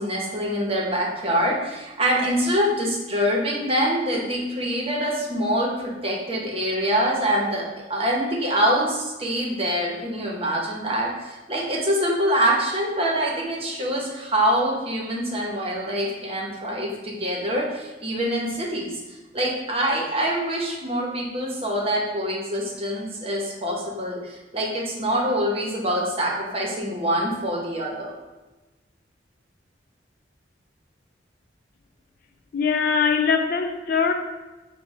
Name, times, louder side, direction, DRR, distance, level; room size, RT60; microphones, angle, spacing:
voice 1, 0.0-19.0 19.3-28.1, equal, 35° right, -3 dB, 0.9 m, -25 dB
voice 2, 32.5-34.1, left 5 dB, 55° left, 6 dB, 0.4 m, -22 dB
5.2 x 2.3 x 4.2 m, 1.1 s
head